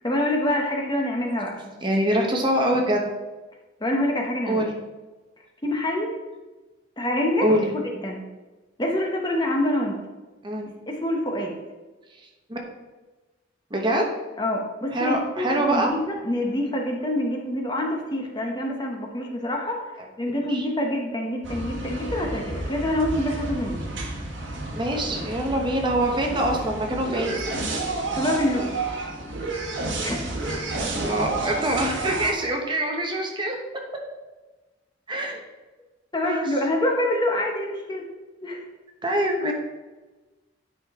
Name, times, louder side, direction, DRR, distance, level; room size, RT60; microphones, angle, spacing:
voice 1, 0.0-1.7 3.8-4.6 5.6-6.1 7.0-7.5 8.0-8.2 8.8-10.0 10.9-11.5 14.4-19.9 20.2-23.8 28.1-28.8 30.0-30.5 36.1-38.1 38.4-38.6, left 1 dB, 20° left, 1 dB, 0.9 m, -26 dB
voice 2, 1.8-3.0 4.4-4.7 7.4-7.7 10.4-10.7 12.5-12.6 13.7-14.0 14.9-15.9 20.5-20.7 24.7-27.4 30.8-33.6 35.1-35.4 36.2-36.5 39.0-39.5, right 1 dB, 25° right, 1 dB, 0.9 m, -24 dB
sound 1, 21.4-32.3, right 2 dB, 65° right, 1.4 m, -31 dB
9.6 x 5.1 x 3.6 m, 1.2 s
head